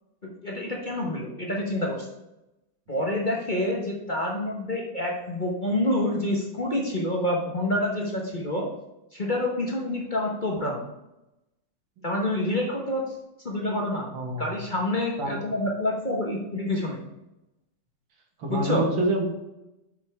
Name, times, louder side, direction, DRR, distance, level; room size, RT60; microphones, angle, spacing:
voice 1, 0.4-2.1 2.9-8.7 9.1-10.8 12.0-13.0 13.4-14.1 14.4-17.0 18.5-18.9, left 1 dB, 30° left, -2 dB, 1.0 m, -27 dB
voice 2, 14.1-14.6 15.2-15.4 18.4-19.2, right 1 dB, 85° right, 1 dB, 2.2 m, -27 dB
7.7 x 7.1 x 3.4 m, 0.92 s
omnidirectional pair, 2.1 m